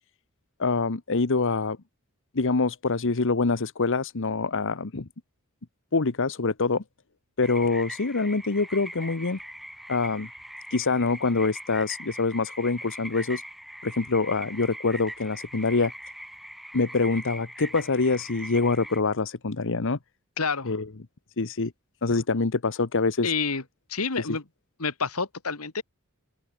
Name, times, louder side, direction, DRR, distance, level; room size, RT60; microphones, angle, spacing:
voice 1, 0.6-1.8 2.3-5.1 5.9-6.8 7.4-9.4 9.9-10.3 10.7-13.4 13.8-15.9 16.7-20.0 20.6-20.8 21.4-21.7 22.0-23.3 24.2-24.3, left 3 dB, 60° left, 1.1 m, -25 dB
sound 1, 7.4-19.0, equal, ahead, 6.7 m, -41 dB
voice 2, 20.4-20.8 23.2-23.6 23.9-24.4 24.8-25.8, left 5 dB, 90° left, 2.3 m, -28 dB
open air
head